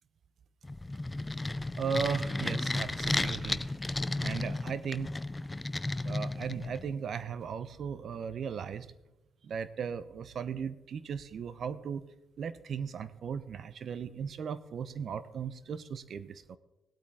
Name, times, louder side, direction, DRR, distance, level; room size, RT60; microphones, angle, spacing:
sound 1, 0.6-7.0, left 2 dB, 20° left, 0.5 m, -34 dB
voice 1, 1.8-3.7 4.2-5.5 6.0-8.9 9.4-12.0 12.4-16.6, right 6 dB, 60° right, 15 dB, 0.7 m, -37 dB
18.0 x 8.6 x 3.6 m, 0.93 s
supercardioid pair, 70°, 0 cm